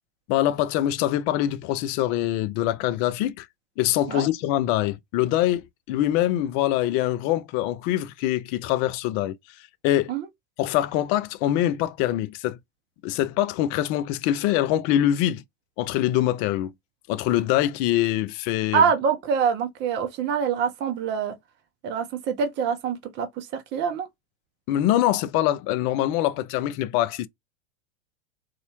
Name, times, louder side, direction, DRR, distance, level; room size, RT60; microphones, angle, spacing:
voice 1, 0.3-3.5 3.8-9.4 9.8-10.1 10.6-12.6 13.0-15.4 15.8-16.7 17.1-18.8 24.7-27.3, left 13 dB, 35° left, 0.4 m, -24 dB
voice 2, 18.7-21.3 21.8-24.1, right 7 dB, 30° right, 0.8 m, -25 dB
4.0 x 2.4 x 2.9 m
hypercardioid pair, 110°, 35 cm